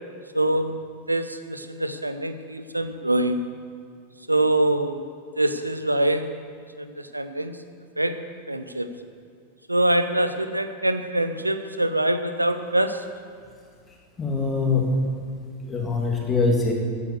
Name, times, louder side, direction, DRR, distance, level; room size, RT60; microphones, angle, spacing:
voice 1, 0.3-0.8 1.1-3.5 4.3-5.0 5.4-6.4 6.8-7.5 8.0-8.9 9.7-13.1, right 1 dB, 85° right, 10 dB, 0.8 m, -24 dB
voice 2, 14.2-14.9 15.6-16.7, left 4 dB, 20° left, 0 dB, 2.7 m, -23 dB
14.0 x 9.6 x 6.9 m, 2.2 s
figure-of-eight pair, 90°, 0 cm